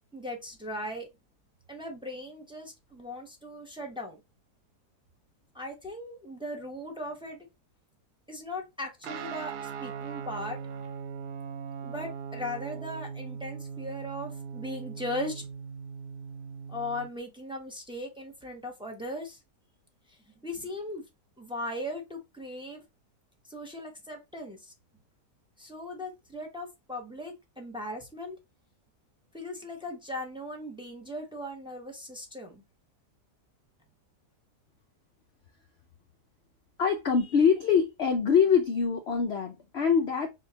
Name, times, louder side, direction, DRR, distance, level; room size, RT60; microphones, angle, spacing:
voice 1, 0.1-1.1 1.7-4.2 5.5-7.4 8.3-10.6 11.8-15.4 16.7-19.4 20.4-21.0 21.4-22.8 23.5-24.7 25.6-28.4 29.3-32.6, left 1 dB, 5° right, 0.4 m, -38 dB
Guitar, 9.0-17.1, right 6 dB, 80° right, 1.1 m, -39 dB
voice 2, 36.8-40.3, left 6 dB, 70° left, 0.6 m, -24 dB
6.1 x 2.2 x 2.7 m
omnidirectional pair, 1.8 m